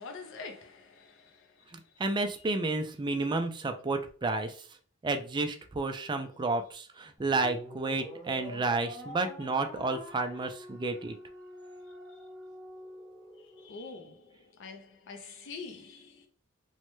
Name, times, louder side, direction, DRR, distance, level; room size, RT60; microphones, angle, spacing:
voice 1, 0.0-2.0 12.1-12.2 13.4-16.3, left 4 dB, 60° left, 0.5 m, -46 dB
voice 2, 1.7-4.7 5.0-11.1, right 3 dB, 20° right, 0.3 m, -31 dB
sound 1, 7.2-13.7, equal, 5° left, 0.8 m, -46 dB
3.0 x 2.1 x 3.0 m
head